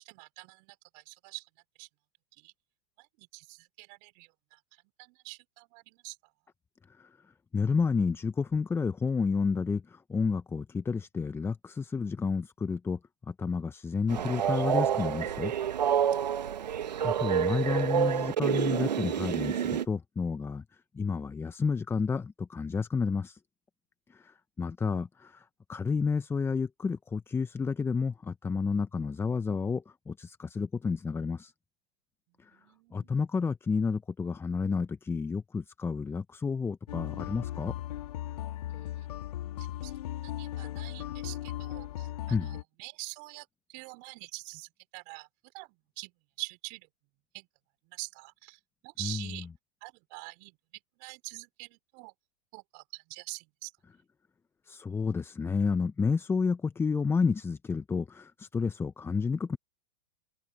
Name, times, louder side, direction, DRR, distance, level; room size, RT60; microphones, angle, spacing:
voice 1, 0.0-1.5 1.8-1.9 2.4-2.5 3.0-4.6 5.0-6.2 16.1-16.2 32.4-33.1 38.7-39.1 39.6-39.9 40.2-45.3 45.5-46.1 46.4-46.9 47.3-47.5 47.9-49.5 49.8-50.6 51.0-52.1 52.5-53.7, right 32 dB, 45° right, 4.9 m, -45 dB
voice 2, 7.5-13.0 13.3-15.5 17.0-20.6 20.9-23.4 24.1-31.5 32.4-32.5 32.9-37.7 42.3-42.6 49.0-49.3 54.7-59.6, left 5 dB, 10° left, 0.8 m, -30 dB
Train, 14.1-19.8, right 9 dB, 80° right, 1.5 m, -28 dB
sound 1, 36.9-42.6, left 13 dB, 65° left, 3.7 m, -37 dB
hypercardioid pair, 115°, 21 cm